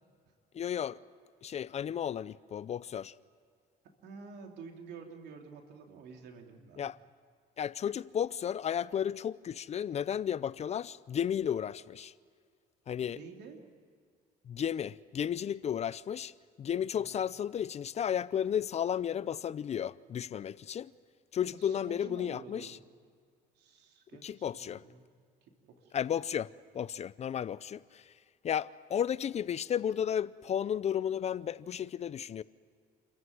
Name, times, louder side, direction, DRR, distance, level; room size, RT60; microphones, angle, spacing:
voice 1, 0.5-1.0 1.4-3.1 6.8-7.0 7.6-12.1 12.9-13.2 14.5-16.3 16.6-20.9 21.3-22.8 24.2-24.8 25.9-28.1 28.4-32.4, left 9 dB, 40° left, 0.5 m, -33 dB
voice 2, 4.0-6.9 13.1-13.6 16.9-17.1 21.5-22.9 23.5-25.1 25.7-26.0, right 5 dB, 80° right, 3.0 m, -49 dB
28.0 x 14.5 x 9.4 m
cardioid pair, 110°, 17 cm